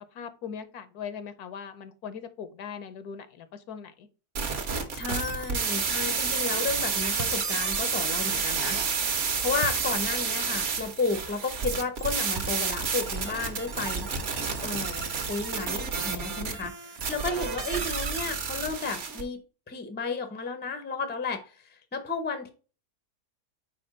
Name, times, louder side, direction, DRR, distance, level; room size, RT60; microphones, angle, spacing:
voice 1, 0.1-4.1, left 7 dB, 75° left, 12 dB, 1.2 m, -40 dB
sound 1, 4.4-19.2, right 5 dB, 50° right, 1.2 m, -30 dB
voice 2, 4.9-8.8 9.4-14.1 14.6-19.4 19.7-22.5, left 4 dB, 15° left, 8 dB, 0.4 m, -32 dB
sound 2, 5.1-5.4 7.2-7.5 9.6-9.9 10.5-10.6 12.3-12.8, right 9 dB, 80° right, 0.6 m, -37 dB
4.8 x 4.3 x 4.9 m, 0.35 s
omnidirectional pair, 1.7 m